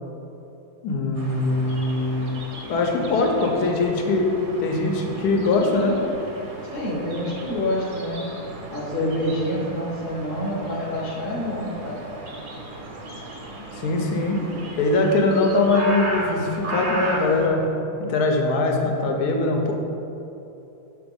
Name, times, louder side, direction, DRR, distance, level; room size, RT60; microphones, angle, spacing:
voice 1, 0.8-2.3 2.7-4.3 4.6-6.0 13.8-14.4 14.8-17.6 18.0-19.7, left 2 dB, 80° left, 2 dB, 1.3 m, -22 dB
sound 1, 1.2-17.5, right 1 dB, 75° right, 1.4 m, -35 dB
voice 2, 6.7-8.2 8.7-12.1, left 1 dB, 45° left, -4 dB, 0.9 m, -27 dB
7.0 x 3.3 x 5.2 m, 2.9 s
omnidirectional pair, 1.7 m